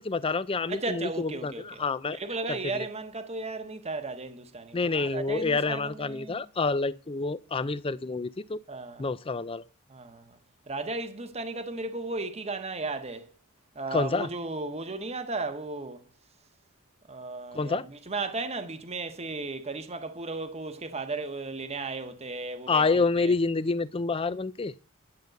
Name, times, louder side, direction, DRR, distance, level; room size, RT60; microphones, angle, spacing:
voice 1, 0.0-2.2 2.5-2.9 4.7-8.6 9.0-9.6 13.9-14.3 17.5-17.8 22.7-24.7, left 4 dB, 25° left, 0.5 m, -28 dB
voice 2, 0.7-1.8 2.1-6.4 8.7-9.0 9.9-10.4 10.7-13.3 13.7-16.0 17.1-23.3, right 3 dB, 30° right, 1.1 m, -35 dB
10.5 x 5.2 x 7.8 m
head